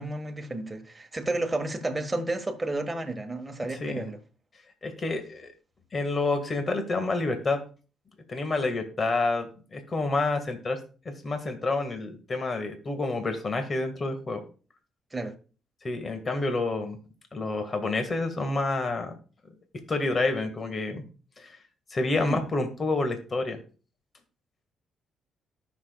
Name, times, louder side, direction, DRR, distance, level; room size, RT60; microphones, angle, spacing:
voice 1, 0.0-4.2 15.1-15.3 22.2-22.4, right 2 dB, 15° right, 1.6 m, -31 dB
voice 2, 4.8-5.5 5.9-7.6 8.3-10.8 11.1-14.4 15.8-17.0 17.3-19.1 19.9-21.0 21.4-21.6 21.9-23.6, left 3 dB, 35° left, 1.8 m, -28 dB
18.0 x 6.2 x 2.3 m
cardioid pair, 90°, 0 cm